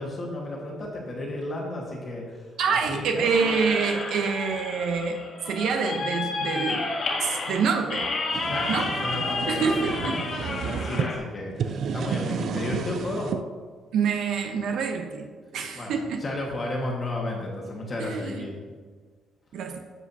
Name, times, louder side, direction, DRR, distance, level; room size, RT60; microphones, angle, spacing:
voice 1, 0.0-2.4 2.7-3.3 8.5-13.4 15.7-18.5, left 1 dB, 25° left, -2 dB, 1.5 m, -33 dB
voice 2, 2.6-5.2 5.4-6.9 7.2-8.1 8.7-8.9 9.5-10.5 13.9-15.3 15.5-16.2 18.0-18.4 19.5-19.8, right 5 dB, 65° right, 4 dB, 0.8 m, -26 dB
sound 1, 3.3-11.2, left 3 dB, 45° left, 1.7 m, -31 dB
sound 2, 8.0-11.1 11.5-13.4, right 7 dB, 50° right, 0.4 m, -31 dB
11.5 x 7.6 x 2.7 m, 1.5 s
cardioid pair, 175°, 0 cm